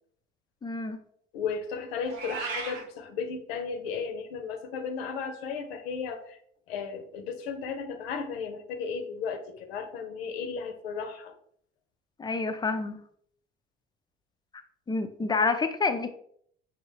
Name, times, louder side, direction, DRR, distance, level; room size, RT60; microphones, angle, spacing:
voice 1, 0.6-1.0 12.2-12.9 14.9-16.1, left 4 dB, 15° left, 8 dB, 0.4 m, -28 dB
voice 2, 1.3-6.4 6.7-11.3, left 5 dB, 75° left, 7 dB, 0.7 m, -35 dB
Meow, 2.1-2.8, right 5 dB, 65° right, 0.9 m, -35 dB
5.4 x 2.5 x 2.9 m, 0.64 s
figure-of-eight pair, 60°, 31 cm